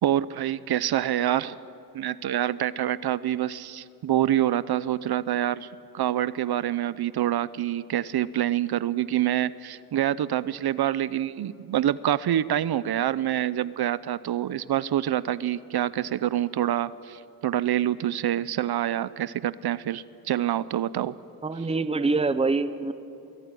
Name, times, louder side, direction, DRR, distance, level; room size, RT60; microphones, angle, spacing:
voice 1, 0.0-1.6 1.9-5.7 5.9-21.2, right 11 dB, 90° right, 17 dB, 0.6 m, -26 dB
voice 2, 21.4-22.9, right 3 dB, 15° right, 12 dB, 0.7 m, -25 dB
23.5 x 17.0 x 9.2 m, 2.6 s
wide cardioid pair, 180°, 37 cm